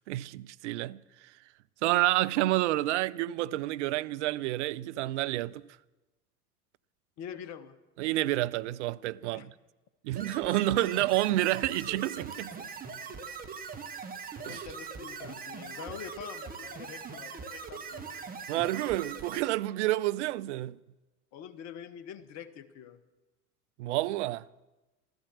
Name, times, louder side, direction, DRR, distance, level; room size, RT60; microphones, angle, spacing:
voice 1, 0.0-1.3 1.8-5.6 8.0-9.5 10.0-12.7 14.5-14.6 18.5-20.8 23.8-24.5, right 16 dB, 50° right, 0.5 m, -29 dB
voice 2, 7.2-7.7 9.3-9.5 14.4-18.3 21.3-23.0, left 8 dB, 35° left, 1.1 m, -45 dB
sound 1, 10.1-19.4, right 5 dB, 20° right, 1.4 m, -41 dB
14.0 x 13.0 x 7.1 m
figure-of-eight pair, 75°, 45 cm